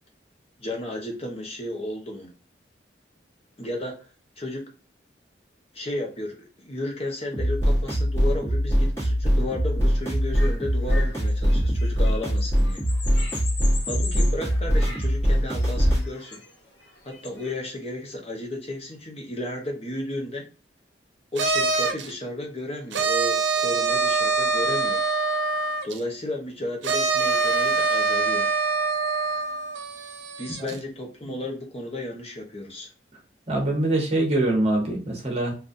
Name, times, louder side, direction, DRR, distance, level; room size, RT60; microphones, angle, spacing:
voice 1, 0.6-2.3 3.6-4.1 4.4-4.7 5.7-12.8 13.9-16.4 17.0-20.5 21.3-25.0 25.8-28.5 30.4-32.9, left 1 dB, 35° left, 1 dB, 0.9 m, -33 dB
sound 1, 7.3-16.1, equal, 15° left, 1.4 m, -22 dB
sound 2, 10.1-17.5, left 4 dB, 75° left, 1.0 m, -39 dB
sound 3, 21.4-22.1 22.9-26.0 26.8-30.8, right 3 dB, 85° right, 0.6 m, -24 dB
voice 2, 33.5-35.5, right 1 dB, 35° right, 0 dB, 1.1 m, -24 dB
3.8 x 2.6 x 2.6 m, 0.36 s
head